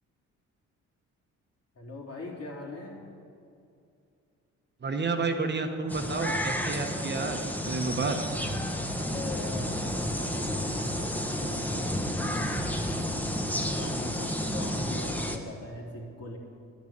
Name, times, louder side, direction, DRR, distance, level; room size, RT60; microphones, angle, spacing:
voice 1, 1.8-3.0 9.0-11.1 11.4-12.5 13.6-16.4, left 2 dB, 55° left, -2 dB, 3.7 m, -41 dB
voice 2, 4.8-7.4 7.6-8.2, right 4 dB, 35° right, 5 dB, 1.3 m, -30 dB
sound 1, 5.9-15.4, equal, 5° left, 1.3 m, -31 dB
10.5 x 10.5 x 8.8 m, 2.6 s
cardioid pair, 90°, 30 cm